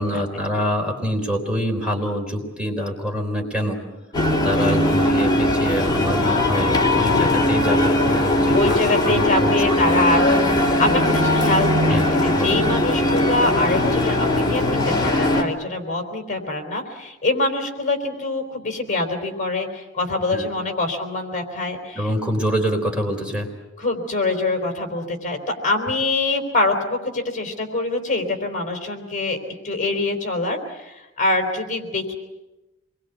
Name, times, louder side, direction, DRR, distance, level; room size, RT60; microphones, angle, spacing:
voice 1, 0.0-3.8 4.4-8.8 9.0-9.6 9.9-10.0 11.9-12.1 12.3-12.6 20.3-20.4 21.9-23.5, equal, 5° right, 1 dB, 4.1 m, -25 dB
sound 1, 4.1-15.4, left 1 dB, 20° left, 3.1 m, -19 dB
voice 2, 6.1-7.4 8.5-22.1 23.8-29.4 29.6-32.1, left 2 dB, 40° left, 4 dB, 3.9 m, -24 dB
27.5 x 22.5 x 8.2 m, 1.0 s
head